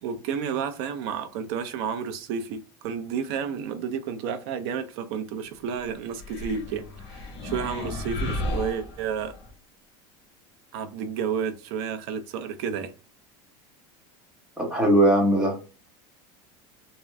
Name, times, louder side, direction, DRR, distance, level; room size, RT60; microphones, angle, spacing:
voice 1, 0.0-2.6 2.8-6.8 7.1-9.3 10.7-12.9, right 7 dB, 65° right, 0.6 m, -31 dB
sound 1, 6.1-9.5, left 2 dB, 45° left, 1.2 m, -33 dB
voice 2, 14.6-15.8, right 1 dB, 5° right, 1.1 m, -20 dB
3.6 x 2.1 x 3.3 m
cardioid pair, 155°, 14 cm